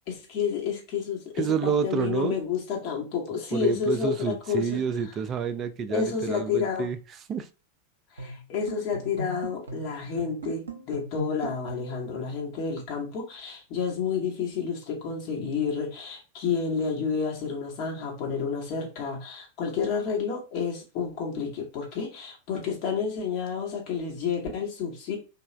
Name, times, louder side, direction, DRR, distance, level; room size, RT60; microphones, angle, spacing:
voice 1, 0.1-4.8 5.9-6.9 8.1-25.2, left 6 dB, 45° left, 1.1 m, -30 dB
voice 2, 1.3-2.4 3.5-7.5, right 6 dB, 30° right, 0.3 m, -29 dB
sound 1, 8.2-12.0, right 1 dB, 70° right, 0.7 m, -39 dB
3.1 x 2.3 x 3.0 m
figure-of-eight pair, 90°, 0 cm